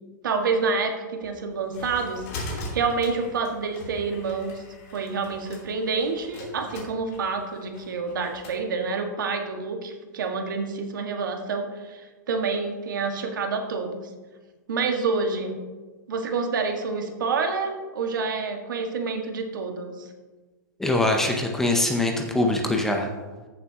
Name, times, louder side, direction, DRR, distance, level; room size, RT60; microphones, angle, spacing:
voice 1, 0.2-4.6 4.9-14.1 14.7-15.6 16.1-20.1, right 4 dB, 80° right, 4 dB, 1.7 m, -28 dB
sound 1, 1.2-8.6, left 1 dB, 45° left, 2.8 m, -40 dB
voice 2, 20.8-23.1, left 2 dB, 5° left, 2 dB, 0.6 m, -23 dB
15.0 x 7.4 x 2.9 m, 1.3 s
supercardioid pair, 170°, 10 cm